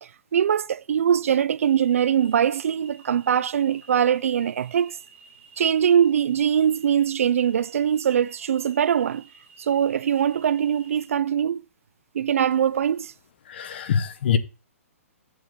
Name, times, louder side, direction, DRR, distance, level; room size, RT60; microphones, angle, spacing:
voice 1, 0.0-5.0 5.6-9.3 9.6-11.6 12.1-13.1, right 9 dB, 65° right, 0.4 m, -22 dB
sound 1, 1.6-11.1, right 4 dB, 15° right, 3.6 m, -52 dB
voice 2, 13.5-14.4, left 8 dB, 45° left, 0.9 m, -24 dB
7.9 x 5.9 x 3.7 m
hypercardioid pair, 165°, 8 cm